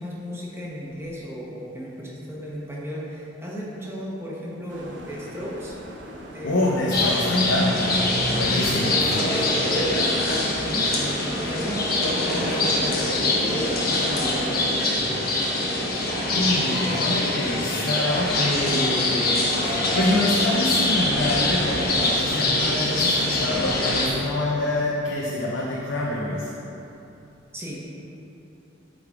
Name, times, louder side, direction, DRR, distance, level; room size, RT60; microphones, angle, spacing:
voice 1, 0.0-5.8 6.3-6.9 10.5-15.6 27.5-27.8, equal, 15° right, -5 dB, 1.1 m, -35 dB
sound 1, 4.7-14.5, equal, 70° right, 0.9 m, -41 dB
voice 2, 6.4-9.4 16.3-26.5, left 1 dB, 75° left, -4 dB, 0.7 m, -26 dB
sound 2, 6.9-24.1, left 2 dB, 55° left, 1.1 m, -23 dB
8.0 x 3.9 x 4.8 m, 3.0 s
head